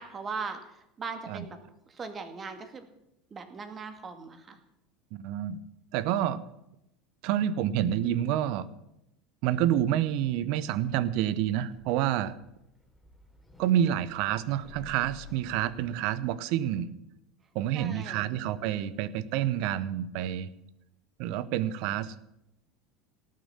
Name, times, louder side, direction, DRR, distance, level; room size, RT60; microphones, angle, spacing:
voice 1, 0.0-1.6 1.9-2.9 3.3-4.6 17.7-18.4, right 4 dB, 30° right, 8 dB, 2.2 m, -39 dB
voice 2, 5.1-5.6 5.9-6.4 7.2-8.7 9.4-12.4 13.6-16.9 17.5-20.5 21.2-22.1, right 11 dB, 60° right, 17 dB, 0.9 m, -28 dB
sound 1, 10.5-16.4, left 3 dB, ahead, 3.7 m, -54 dB
18.0 x 7.6 x 7.3 m, 0.85 s
hypercardioid pair, 80°, 0 cm